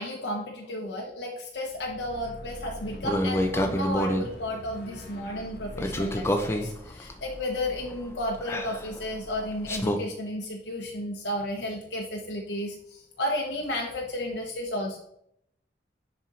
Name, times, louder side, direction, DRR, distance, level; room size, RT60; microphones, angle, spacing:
voice 1, 0.0-15.0, left 1 dB, 75° left, 0 dB, 1.1 m, -33 dB
sound 1, 1.7-8.0, left 1 dB, 60° left, 1.3 m, -43 dB
sound 2, 3.0-4.3 5.8-10.0, equal, 15° left, 0.6 m, -29 dB
10.5 x 4.4 x 4.1 m, 0.74 s
head